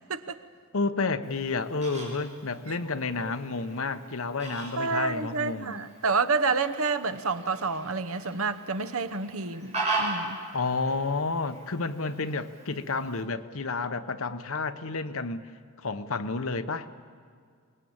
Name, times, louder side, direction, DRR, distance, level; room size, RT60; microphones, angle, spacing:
voice 1, 0.7-5.7 10.5-15.5 15.8-16.9, left 3 dB, 75° left, 1.0 m, -30 dB
Fowl, 1.2-13.2, right 2 dB, 30° right, 6.1 m, -39 dB
voice 2, 4.8-10.4, right 4 dB, 80° right, 1.0 m, -29 dB
25.0 x 20.5 x 8.8 m
head